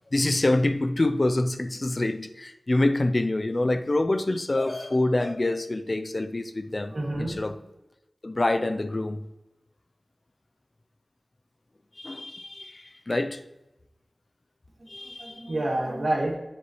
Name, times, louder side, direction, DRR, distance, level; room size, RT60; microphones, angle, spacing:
voice 1, 0.1-7.6 8.2-9.2 12.0-13.4 14.9-15.4, left 2 dB, 50° left, 0.5 m, -26 dB
voice 2, 6.9-7.4 14.8-16.4, right 1 dB, 70° right, 2.5 m, -29 dB
7.6 x 6.8 x 3.1 m
wide cardioid pair, 45°, 0 cm